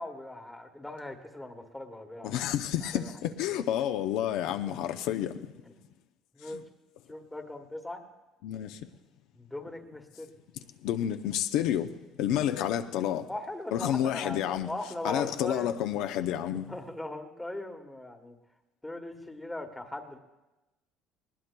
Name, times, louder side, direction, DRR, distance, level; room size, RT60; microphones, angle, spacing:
voice 1, 0.0-2.4 2.9-3.1 4.4-4.8 5.6-5.8 6.3-6.6 7.1-8.0 9.3-10.3 13.3-15.7 16.5-18.3 18.8-20.2, left 1 dB, 5° left, 1.1 m, -40 dB
voice 2, 2.2-5.3 6.5-6.6 8.4-8.8 10.8-11.9 12.2-13.3 13.7-14.7 15.0-16.7, left 11 dB, 75° left, 0.5 m, -29 dB
20.0 x 19.5 x 2.2 m
cardioid pair, 145°, 0 cm